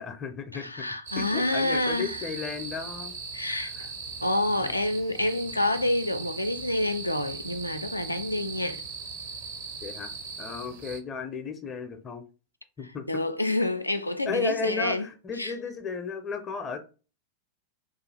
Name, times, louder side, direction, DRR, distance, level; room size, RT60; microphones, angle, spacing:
voice 1, 0.0-0.9 1.2-3.1 3.5-3.9 4.6-4.7 9.8-10.1 10.4-12.2 12.8-13.2 14.3-16.8, left 5 dB, 25° left, 0.5 m, -34 dB
voice 2, 0.5-2.2 3.3-3.7 4.2-8.8 13.1-15.0 15.4-15.5, left 1 dB, 85° left, 0.3 m, -28 dB
sound 1, 1.1-11.0, right 5 dB, 55° right, 0.6 m, -39 dB
2.4 x 2.3 x 3.2 m
figure-of-eight pair, 90°, 0 cm